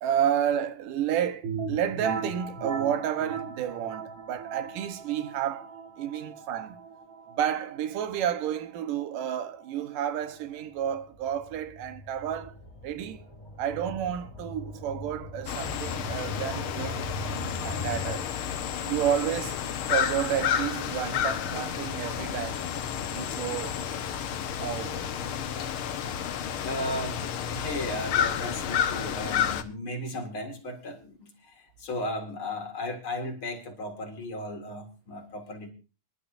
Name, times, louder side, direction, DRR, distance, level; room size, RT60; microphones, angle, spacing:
voice 1, 0.0-6.8 7.3-13.3 13.6-18.3 18.8-19.6 19.9-22.6 23.1-23.8 24.6-25.5, right 9 dB, 85° right, 2.7 m, -31 dB
sound 1, 1.4-11.0, right 5 dB, 45° right, 2.1 m, -39 dB
sound 2, 10.8-18.2, left 1 dB, 10° left, 2.0 m, -40 dB
sound 3, 15.5-29.6, left 9 dB, 65° left, 1.3 m, -31 dB
voice 2, 26.6-35.7, left 1 dB, 45° left, 2.6 m, -35 dB
24.5 x 11.5 x 2.6 m
omnidirectional pair, 3.7 m